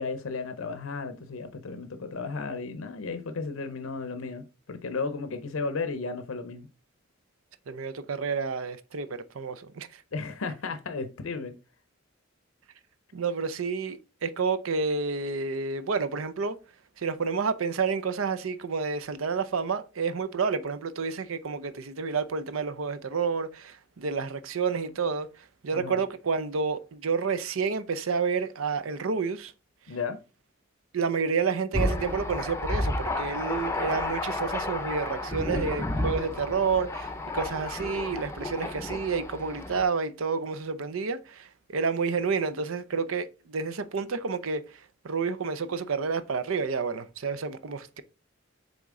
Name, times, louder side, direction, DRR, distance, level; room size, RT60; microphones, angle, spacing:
voice 1, 0.0-6.7 10.1-11.5 25.7-26.0 29.9-30.2, left 4 dB, 85° left, 0.7 m, -34 dB
voice 2, 7.7-10.0 13.1-16.6 17.0-25.3 25.6-29.5 30.9-44.6 45.0-48.0, right 5 dB, 80° right, 0.6 m, -30 dB
Thunder, 31.7-39.8, left 2 dB, 15° left, 0.6 m, -31 dB
7.1 x 3.8 x 3.7 m
head